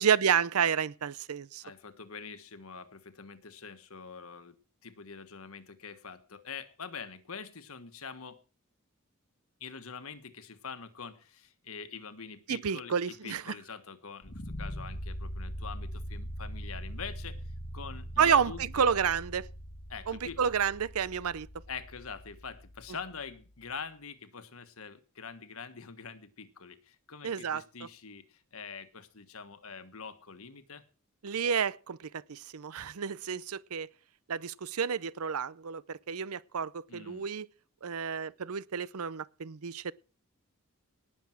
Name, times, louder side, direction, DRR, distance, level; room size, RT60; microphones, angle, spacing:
voice 1, 0.0-1.6 12.5-13.4 18.2-19.5 20.1-21.5 27.2-27.6 31.2-33.9 34.3-37.5 37.8-39.9, right 7 dB, 85° right, 0.6 m, -30 dB
voice 2, 1.6-8.4 9.6-18.8 19.9-20.5 21.7-30.8 36.9-37.3, left 5 dB, 75° left, 1.4 m, -45 dB
sound 1, 14.2-23.3, equal, 45° left, 1.5 m, -42 dB
19.0 x 7.0 x 6.0 m
head